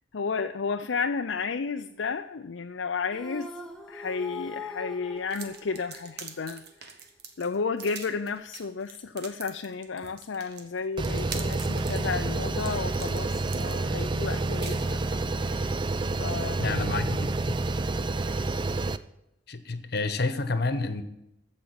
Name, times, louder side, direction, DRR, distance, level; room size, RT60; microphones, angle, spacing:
voice 1, 0.1-3.6 3.9-7.0 7.4-15.0 16.2-16.7, left 5 dB, 75° left, 6 dB, 0.5 m, -32 dB
sound 1, 3.1-6.5, left 2 dB, 5° left, 1.2 m, -41 dB
sound 2, 5.3-15.3, right 6 dB, 55° right, 1.5 m, -44 dB
sound 3, 11.0-19.0, right 2 dB, 25° right, 0.4 m, -29 dB
voice 2, 16.6-17.6 19.5-21.0, left 3 dB, 55° left, 11 dB, 1.2 m, -29 dB
15.0 x 5.3 x 8.9 m, 0.84 s
head